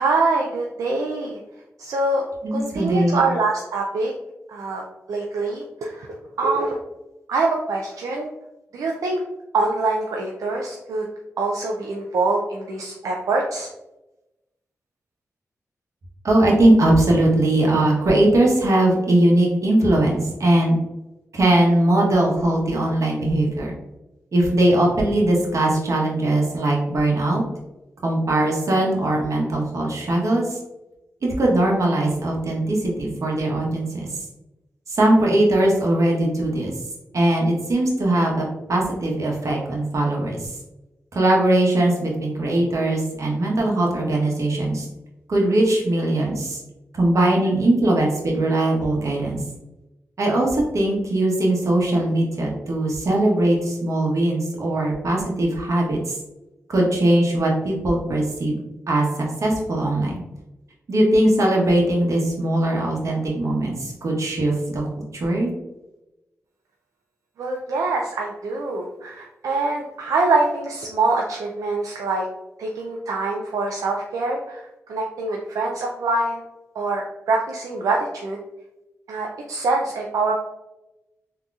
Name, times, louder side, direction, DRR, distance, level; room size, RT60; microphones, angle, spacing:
voice 1, 0.0-1.4 1.8-4.1 4.5-6.1 6.4-6.8 7.3-8.3 8.7-9.2 9.5-11.1 11.4-13.7 67.4-72.3 72.6-74.6 74.9-76.4 76.8-78.4 79.1-80.3, right 3 dB, 85° right, 0 dB, 0.4 m, -24 dB
voice 2, 2.4-3.2 16.2-20.7 21.3-23.7 24.3-27.4 28.0-30.6 31.2-34.1 34.9-36.7 37.1-40.4 41.1-44.9 45.3-46.6 46.9-49.4 50.2-56.2 56.7-58.6 58.9-60.2 60.9-64.8 65.1-65.5, right 1 dB, 65° right, -1 dB, 1.0 m, -20 dB
3.7 x 2.8 x 2.3 m, 0.97 s
cardioid pair, 50°, 6 cm